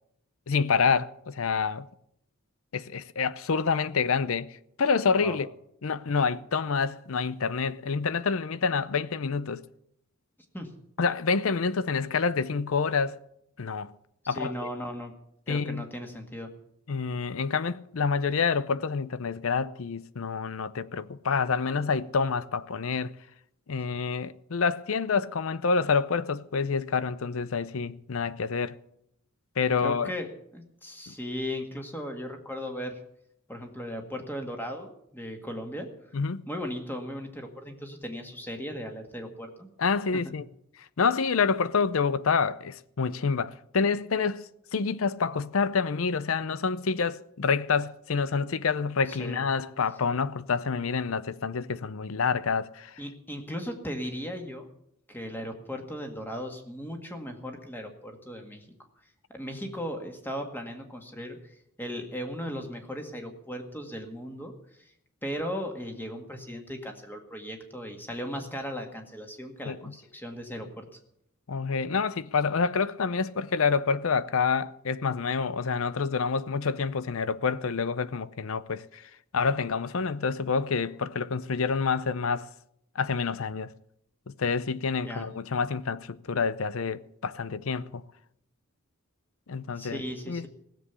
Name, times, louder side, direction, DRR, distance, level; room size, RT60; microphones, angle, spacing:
voice 1, 0.5-1.9 2.7-5.5 5.8-9.6 11.0-13.2 13.6-13.9 14.3-14.5 15.5-15.8 16.9-23.1 23.7-28.8 29.6-30.1 31.1-31.2 36.1-36.4 39.8-40.5 41.0-53.0 69.6-69.9 71.5-79.0 79.3-82.5 83.0-83.7 84.3-88.0 89.5-90.5, left 5 dB, 70° left, 0.6 m, -27 dB
voice 2, 14.2-15.1 15.5-16.5 29.8-30.3 30.5-33.0 33.5-35.9 36.5-39.7 49.1-49.4 53.0-54.7 55.1-58.7 59.3-61.4 61.8-64.5 64.8-64.9 65.2-70.9 85.0-85.3 89.8-90.5, equal, 10° left, 1.9 m, -37 dB
16.5 x 7.6 x 8.3 m
head